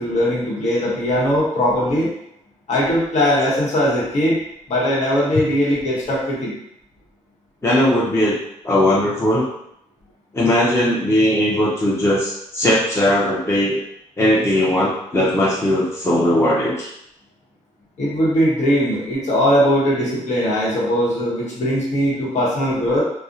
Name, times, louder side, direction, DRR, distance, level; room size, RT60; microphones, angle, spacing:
voice 1, 0.0-2.1 2.7-4.4 4.7-6.5 18.0-23.0, equal, 60° left, -5 dB, 1.0 m, -19 dB
voice 2, 7.6-9.5 10.3-13.8 14.2-16.9, left 1 dB, 20° left, -6 dB, 0.6 m, -18 dB
2.4 x 2.0 x 2.6 m, 0.76 s
supercardioid pair, 65°, 13 cm